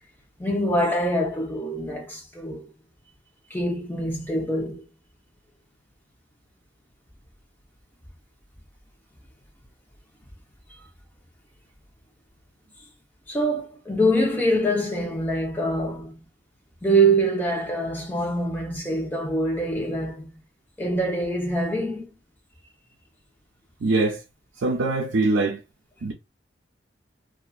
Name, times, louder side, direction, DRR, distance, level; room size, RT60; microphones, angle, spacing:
voice 1, 0.4-2.7 3.5-4.8 13.3-16.2 16.8-20.4 20.8-22.1, right 1 dB, 10° left, 0.8 m, -24 dB
voice 2, 23.8-24.2 24.6-25.6 26.0-26.1, right 3 dB, 80° right, 0.5 m, -22 dB
2.8 x 2.4 x 2.4 m
head